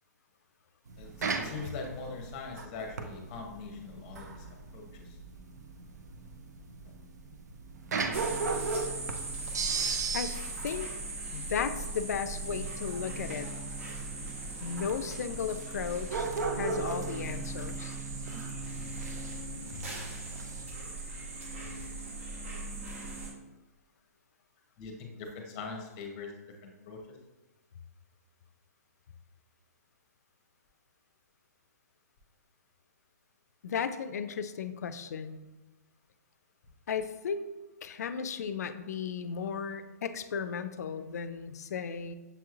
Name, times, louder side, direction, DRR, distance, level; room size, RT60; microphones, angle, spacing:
sound 1, 0.9-20.6, right 4 dB, 75° right, 0.5 m, -37 dB
voice 1, 1.4-5.2 24.8-26.3 26.6-27.2, left 4 dB, 25° left, 2 dB, 0.7 m, -42 dB
sound 2, 8.1-23.3, right 3 dB, 55° right, 1.0 m, -39 dB
voice 2, 11.3-13.5 14.6-16.3 16.5-18.0 33.6-35.4 36.9-37.4 37.8-42.1, left 6 dB, 70° left, 11 dB, 0.4 m, -35 dB
6.8 x 3.0 x 2.4 m, 1.1 s
hypercardioid pair, 165°, 9 cm